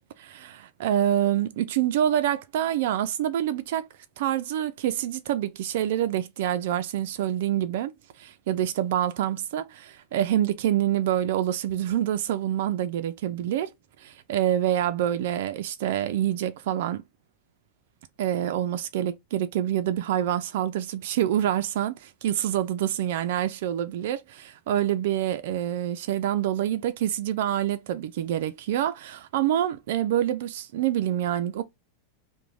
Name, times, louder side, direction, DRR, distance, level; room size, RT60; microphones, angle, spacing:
voice 1, 0.2-3.9 4.2-7.9 8.2-13.7 14.0-17.0 18.2-31.6, right 11 dB, 70° right, 0.3 m, -26 dB
2.5 x 2.0 x 3.0 m
supercardioid pair, 145°, 0 cm